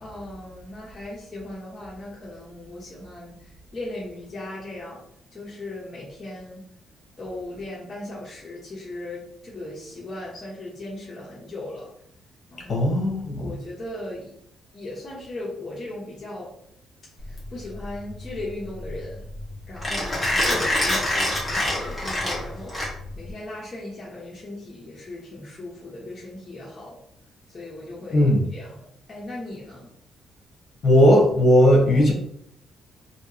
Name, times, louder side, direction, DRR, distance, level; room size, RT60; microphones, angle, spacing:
voice 1, 0.0-5.0 5.3-6.6 7.2-11.9 12.5-12.9 13.4-14.3 14.7-16.6 17.2-19.3 19.7-27.0 27.5-29.9, left 2 dB, 35° left, -6 dB, 0.9 m, -37 dB
voice 2, 12.7-13.5 28.1-28.4 30.8-32.1, equal, 50° left, -1 dB, 1.2 m, -17 dB
Mechanisms, 17.2-23.3, left 1 dB, 10° left, 1.5 m, -26 dB
3.4 x 2.7 x 2.9 m, 0.69 s
cardioid pair, 90°, 0 cm